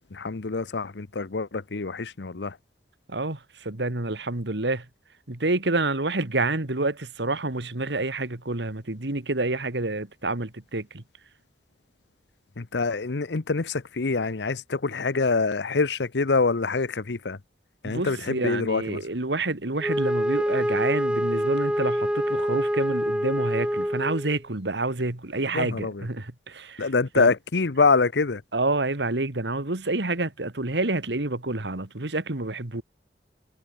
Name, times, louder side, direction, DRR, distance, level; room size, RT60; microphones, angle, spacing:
voice 1, 0.1-2.6 12.6-17.4 17.8-19.0 25.5-26.1 26.8-28.4, left 4 dB, 75° left, 0.8 m, -25 dB
voice 2, 3.1-4.9 5.3-11.0 17.8-26.9 27.2-27.3 28.5-32.8, right 2 dB, 80° right, 2.1 m, -28 dB
Wind instrument woodwind instrument, 19.8-24.4, equal, 5° right, 2.5 m, -26 dB
head